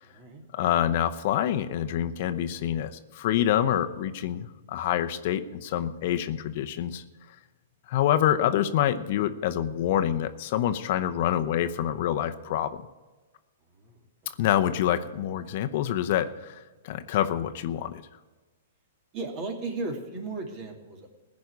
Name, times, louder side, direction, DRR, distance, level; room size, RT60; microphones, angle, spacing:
voice 1, 0.0-0.5 13.8-14.0 19.1-21.1, right 3 dB, 35° right, 4 dB, 2.6 m, -35 dB
voice 2, 0.5-7.0 7.9-12.8 14.4-18.0, left 11 dB, 55° left, 9 dB, 0.7 m, -26 dB
16.0 x 5.3 x 9.6 m, 1.3 s
hypercardioid pair, 135°, 0 cm